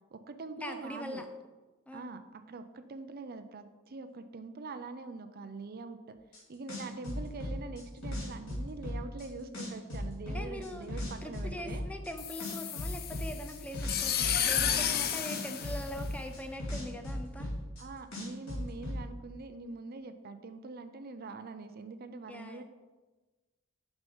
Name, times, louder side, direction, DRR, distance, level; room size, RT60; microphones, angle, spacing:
voice 1, 0.1-1.2 1.9-6.1 6.5-11.8 17.8-22.6, right 3 dB, 45° right, 9 dB, 0.5 m, -44 dB
voice 2, 0.6-1.2 1.9-2.1 10.3-10.9 11.2-17.5 22.3-22.6, left 1 dB, 5° left, 5 dB, 0.6 m, -42 dB
sound 1, 6.3-6.4 6.7-9.3 9.5-12.1 12.4-15.0 15.3-17.8 18.1-19.0, left 1 dB, 85° left, 2.8 m, -37 dB
sound 2, 12.2-16.5, left 9 dB, 50° left, 0.6 m, -32 dB
6.5 x 6.2 x 5.4 m, 1.2 s
head